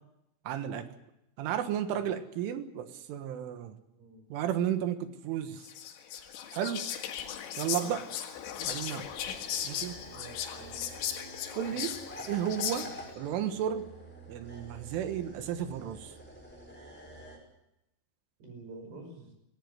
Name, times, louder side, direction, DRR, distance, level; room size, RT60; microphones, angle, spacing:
voice 1, 0.5-0.9 1.4-3.8 4.3-5.7 6.5-6.8 7.6-8.1 8.7-9.1 9.6-10.1 11.6-12.0 12.3-12.9 13.2-13.9 14.3-16.2, right 10 dB, 85° right, 9 dB, 3.9 m, -33 dB
voice 2, 3.9-4.3 7.7-8.0 10.1-10.8 18.4-19.3, right 3 dB, 65° right, 4 dB, 7.7 m, -48 dB
Whispering, 5.6-13.2, left 9 dB, 85° left, 4.3 m, -37 dB
sound 1, 8.3-17.4, equal, ahead, 5.3 m, -48 dB
19.0 x 18.0 x 9.5 m, 0.87 s
omnidirectional pair, 5.5 m